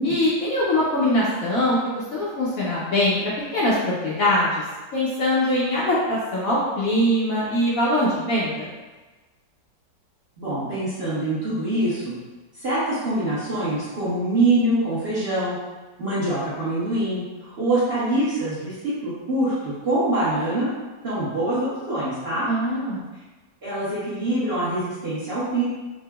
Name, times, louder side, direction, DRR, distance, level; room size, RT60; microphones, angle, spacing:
voice 1, 0.0-1.8 2.1-4.6 4.9-8.7 22.5-23.0, left 1 dB, 70° left, -7 dB, 0.9 m, -22 dB
voice 2, 10.4-12.1 12.6-15.6 16.0-20.7 21.0-22.5 23.6-25.6, right 1 dB, 45° right, -11 dB, 0.9 m, -24 dB
4.6 x 2.0 x 2.2 m, 1.2 s
omnidirectional pair, 1.9 m